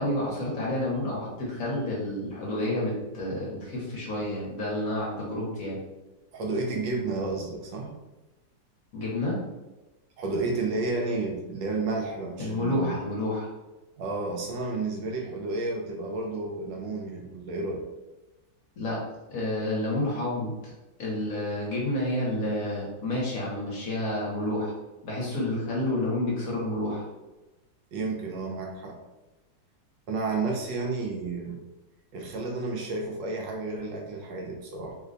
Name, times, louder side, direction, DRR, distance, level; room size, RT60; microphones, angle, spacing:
voice 1, 0.0-5.8 8.9-9.4 12.4-13.5 18.8-19.0 19.3-20.5 21.0-24.7 25.0-27.0, left 1 dB, 55° left, -4 dB, 1.1 m, -29 dB
voice 2, 6.3-7.9 10.2-13.0 14.0-17.9 27.9-29.0 30.1-31.6 32.1-34.9, right 3 dB, 75° right, 1 dB, 1.3 m, -31 dB
3.3 x 2.2 x 3.7 m, 1.1 s
omnidirectional pair, 2.0 m